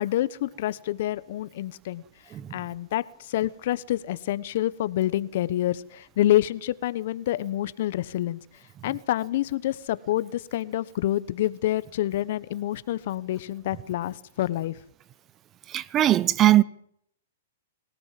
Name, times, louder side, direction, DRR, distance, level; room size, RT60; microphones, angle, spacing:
voice 1, 0.0-2.0 2.5-8.4 8.8-14.8, left 14 dB, 60° left, 1.1 m, -27 dB
voice 2, 15.7-16.6, right 13 dB, 25° right, 0.9 m, -20 dB
24.0 x 17.5 x 7.6 m
hypercardioid pair, 135°, 0 cm